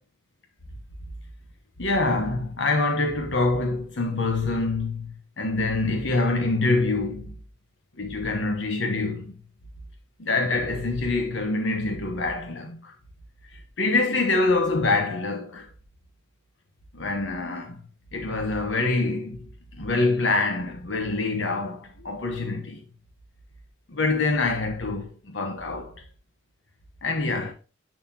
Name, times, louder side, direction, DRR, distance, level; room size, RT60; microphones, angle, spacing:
voice 1, 1.8-7.4 8.0-9.3 10.2-12.9 13.4-15.7 16.9-17.8 18.1-22.8 23.9-26.0 27.0-27.5, left 3 dB, 70° left, 1.2 m, -25 dB
10.5 x 4.1 x 2.9 m
head